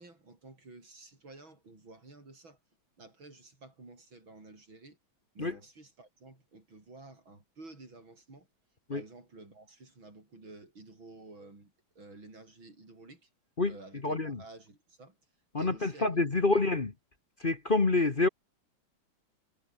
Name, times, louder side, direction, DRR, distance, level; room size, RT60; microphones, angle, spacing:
voice 1, 0.0-2.6 3.0-5.0 5.3-8.5 8.9-13.3 13.7-15.2 15.6-16.7, right 2 dB, 80° right, 7.8 m, -52 dB
voice 2, 14.0-14.4 15.5-16.9 17.4-18.3, left 3 dB, 30° left, 1.4 m, -27 dB
omnidirectional pair, 2.1 m